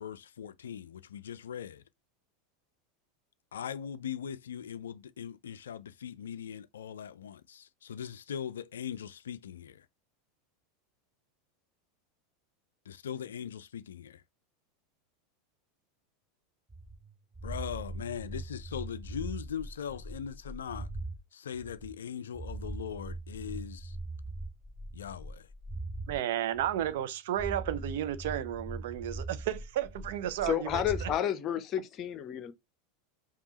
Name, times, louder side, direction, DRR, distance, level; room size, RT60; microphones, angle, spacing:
voice 1, 0.0-1.8 3.5-9.9 12.9-14.2 17.4-20.9 21.3-24.0 24.9-25.5, left 8 dB, 70° left, 0.3 m, -40 dB
sound 1, 16.7-21.2 21.5-26.2 26.5-27.1 27.3-31.2, right 2 dB, 10° right, 0.6 m, -41 dB
voice 2, 26.1-31.1, right 11 dB, 60° right, 0.5 m, -33 dB
voice 3, 30.4-32.5, left 11 dB, 35° left, 0.7 m, -31 dB
5.2 x 2.4 x 2.9 m
figure-of-eight pair, 85°, 0 cm